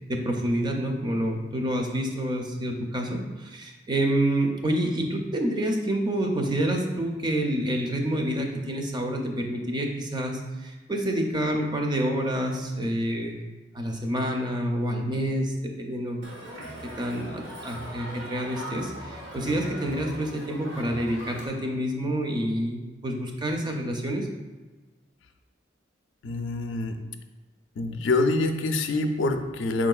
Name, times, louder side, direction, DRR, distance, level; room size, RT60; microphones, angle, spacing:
voice 1, 0.1-13.3 13.7-16.2 17.0-24.3, right 1 dB, 25° right, 2 dB, 0.4 m, -28 dB
Crowd, 16.2-21.5, equal, 80° right, 1.1 m, -40 dB
voice 2, 26.2-27.0 27.8-29.9, left 2 dB, 75° left, 6 dB, 0.4 m, -25 dB
4.9 x 3.7 x 2.3 m, 1.2 s
head